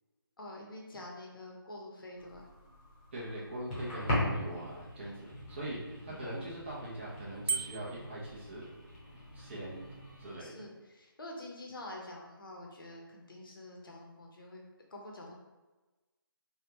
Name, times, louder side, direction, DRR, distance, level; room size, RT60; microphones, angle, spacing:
voice 1, 0.4-2.5 6.1-6.4 10.4-14.6 14.9-15.3, left 1 dB, 65° left, -1 dB, 0.8 m, -47 dB
sound 1, 2.2-10.4, left 1 dB, 20° left, 1.0 m, -40 dB
voice 2, 3.1-8.7 9.3-9.8 10.2-10.5, right 1 dB, 30° right, -7 dB, 0.9 m, -42 dB
Bicycle bell, 7.5-8.1, right 5 dB, 80° right, 0.6 m, -34 dB
3.4 x 2.3 x 2.9 m, 1.2 s
figure-of-eight pair, 155°, 13 cm